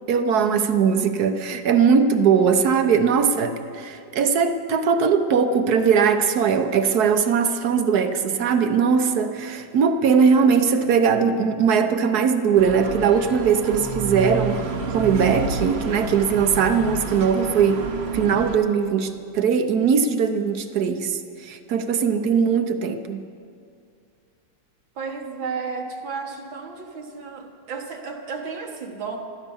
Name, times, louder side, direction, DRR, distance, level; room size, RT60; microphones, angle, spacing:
voice 1, 0.1-14.6 14.9-17.8 18.1-23.2, right 6 dB, 60° right, 8 dB, 1.3 m, -20 dB
sound 1, 12.6-18.6, right 4 dB, 40° right, 1.0 m, -30 dB
voice 2, 25.0-29.2, right 5 dB, 80° right, 2 dB, 2.2 m, -33 dB
15.5 x 13.0 x 7.1 m, 2.4 s
omnidirectional pair, 2.1 m